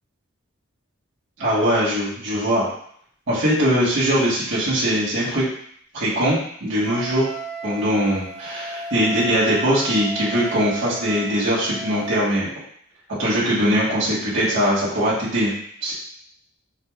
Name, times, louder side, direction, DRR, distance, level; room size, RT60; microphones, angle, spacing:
voice 1, 1.4-2.7 3.3-5.4 5.9-7.3 7.6-12.5 13.2-15.5 15.8-15.9, equal, 65° right, -8 dB, 1.4 m, -21 dB
Wind instrument woodwind instrument, 6.8-12.3, right 3 dB, 40° right, 0.7 m, -34 dB
4.1 x 3.1 x 2.3 m, 0.65 s
head